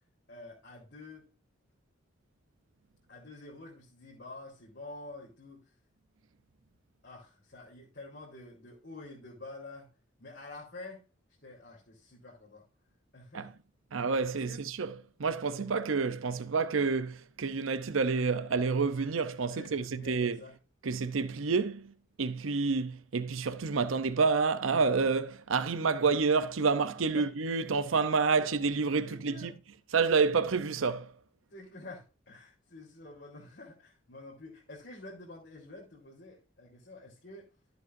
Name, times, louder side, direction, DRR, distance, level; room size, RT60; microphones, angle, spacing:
voice 1, 0.3-1.3 3.1-5.6 7.0-9.9 10.2-11.0 11.4-12.6 13.1-13.5 14.3-14.6 19.5-20.5 27.1-27.3 28.4-28.5 29.0-29.5 31.5-37.5, left 2 dB, 55° left, 3.8 m, -48 dB
voice 2, 13.9-14.9 15.2-20.4 20.8-21.9 22.2-29.5 29.9-31.1, right 4 dB, 90° right, 0.7 m, -29 dB
13.5 x 8.0 x 2.6 m
head